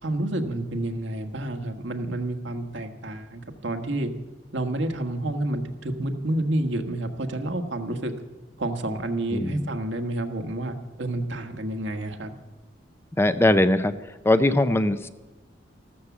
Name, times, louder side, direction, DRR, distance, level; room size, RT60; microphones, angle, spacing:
voice 1, 0.0-4.1 4.5-8.1 8.6-12.4, right 1 dB, 75° right, 5 dB, 1.5 m, -29 dB
voice 2, 9.3-9.7 13.2-13.9 14.2-15.1, left 1 dB, 15° left, 11 dB, 0.5 m, -20 dB
14.5 x 13.0 x 7.2 m, 1.1 s
head